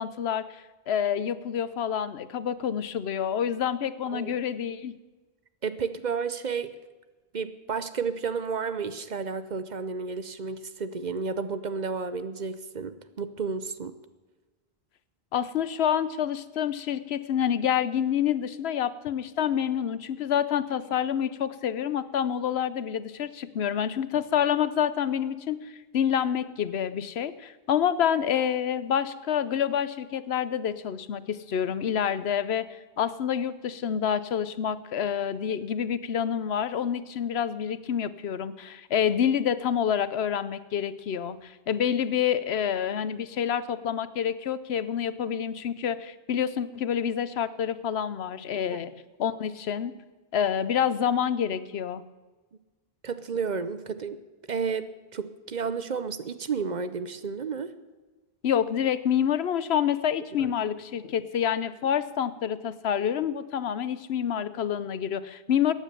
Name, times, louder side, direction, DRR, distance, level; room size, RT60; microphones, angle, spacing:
voice 1, 0.0-5.0 15.3-32.7 33.0-48.9 49.2-49.9 50.3-52.0 58.4-65.7, left 9 dB, 85° left, 15 dB, 1.0 m, -27 dB
voice 2, 4.1-4.4 5.6-6.7 7.3-13.9 48.7-48.8 53.0-54.2 54.5-57.7 60.4-60.5, right 5 dB, 50° right, 12 dB, 0.8 m, -32 dB
14.5 x 9.2 x 6.7 m, 1.2 s
omnidirectional pair, 1.0 m